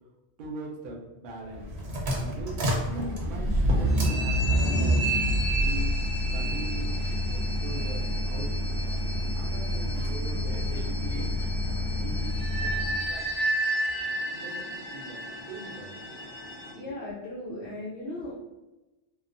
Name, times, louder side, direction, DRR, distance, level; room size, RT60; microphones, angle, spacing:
voice 1, 0.4-1.7 2.1-5.1 5.6-6.0 6.3-7.0 7.3-9.0 9.3-11.4 11.7-13.2 14.1-15.9, right 2 dB, 60° right, 0 dB, 0.7 m, -41 dB
sound 1, 1.5-13.0, equal, 80° right, 0.9 m, -28 dB
sound 2, 3.9-16.7, right 1 dB, 55° left, 1.0 m, -34 dB
voice 2, 16.7-18.3, left 1 dB, 85° left, -7 dB, 0.9 m, -37 dB
2.9 x 2.0 x 2.5 m, 1.0 s
omnidirectional pair, 1.1 m